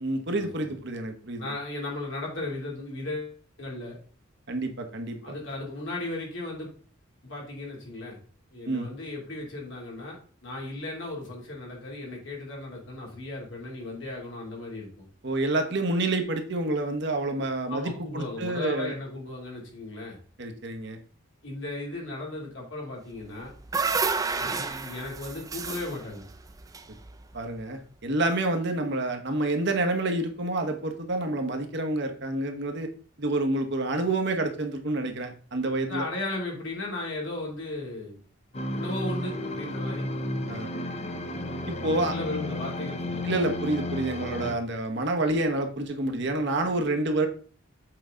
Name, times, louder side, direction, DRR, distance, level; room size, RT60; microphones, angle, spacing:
voice 1, 0.0-1.5 4.5-5.2 8.7-8.9 15.2-18.9 20.4-21.0 27.3-32.9 33.2-36.1 40.5-40.7 41.7-42.1 43.2-47.3, right 2 dB, 55° right, 4 dB, 1.1 m, -28 dB
voice 2, 1.4-4.0 5.2-6.7 7.2-8.2 8.5-15.1 17.7-20.2 21.4-23.5 24.4-26.2 35.8-38.2 38.7-40.0 41.8-43.4, left 2 dB, 60° left, -2 dB, 2.9 m, -36 dB
sound 1, 23.2-27.5, right 4 dB, 15° right, 0.4 m, -31 dB
sound 2, 38.5-44.6, left 1 dB, 30° left, 0.7 m, -33 dB
7.8 x 4.8 x 3.8 m, 0.42 s
head